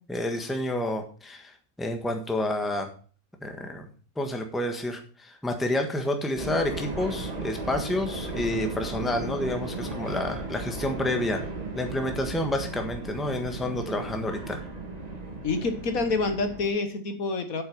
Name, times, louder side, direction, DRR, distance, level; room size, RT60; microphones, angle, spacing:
voice 1, 0.1-2.9 3.4-3.9 4.2-11.4 11.7-14.6, left 1 dB, ahead, 4 dB, 1.3 m, -29 dB
sound 1, 6.4-16.7, right 2 dB, 25° right, 1.8 m, -35 dB
voice 2, 15.4-17.6, left 3 dB, 60° left, 7 dB, 1.7 m, -27 dB
8.8 x 7.7 x 5.4 m, 0.41 s
omnidirectional pair, 1.7 m